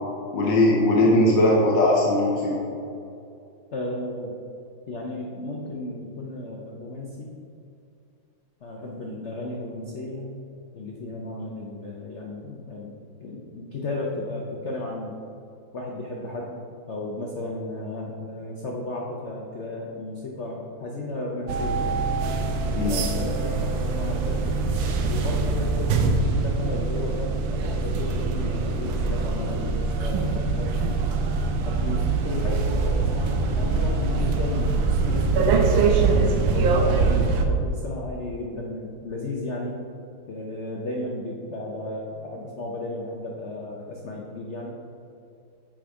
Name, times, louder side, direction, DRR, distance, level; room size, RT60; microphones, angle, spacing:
voice 1, 0.3-2.5 22.7-23.0, left 1 dB, 65° left, -3 dB, 1.5 m, -19 dB
voice 2, 3.7-4.4 4.9-7.3 8.6-10.3 10.7-15.2 15.7-16.6 16.9-21.9 22.9-24.6 25.1-30.9 31.7-39.8 40.3-44.8, left 2 dB, 80° left, -1 dB, 0.6 m, -34 dB
sound 1, 21.5-37.4, right 4 dB, 75° right, 1.4 m, -23 dB
7.7 x 5.1 x 4.6 m, 2.5 s
omnidirectional pair, 2.3 m